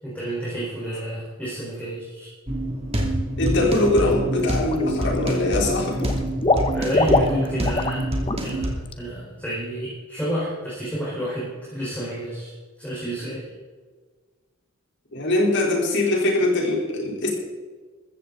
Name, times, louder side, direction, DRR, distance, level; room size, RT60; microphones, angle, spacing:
voice 1, 0.0-2.3 6.7-8.1 8.4-8.7 8.9-12.5 12.8-13.5, right 1 dB, 5° left, -8 dB, 4.7 m, -30 dB
sound 1, 2.5-8.7, right 1 dB, 25° right, 2.6 m, -26 dB
voice 2, 3.4-6.1 15.1-17.3, left 2 dB, 55° left, -1 dB, 4.0 m, -22 dB
Water / Liquid, 3.8-4.1 4.5-5.2 5.5-8.0 8.3-8.5 8.9-9.0, left 2 dB, 25° left, 1.0 m, -23 dB
15.0 x 14.5 x 4.0 m, 1.4 s
head